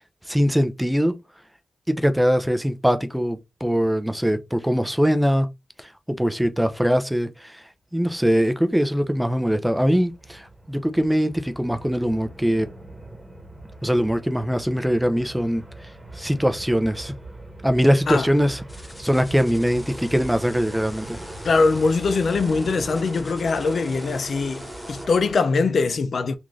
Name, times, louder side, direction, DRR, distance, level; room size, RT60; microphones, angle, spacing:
voice 1, 0.3-1.1 1.9-5.5 5.8-7.6 7.9-12.7 13.8-15.6 16.2-17.1 17.6-18.6 19.0-21.2, equal, 5° right, 0.5 m, -22 dB
sound 1, 8.7-25.3, right 1 dB, 25° right, 1.2 m, -40 dB
sound 2, 18.7-25.1, left 1 dB, 20° left, 1.2 m, -45 dB
voice 2, 21.4-26.4, left 4 dB, 70° left, 0.4 m, -22 dB
3.6 x 2.5 x 3.1 m
cardioid pair, 70°, 0 cm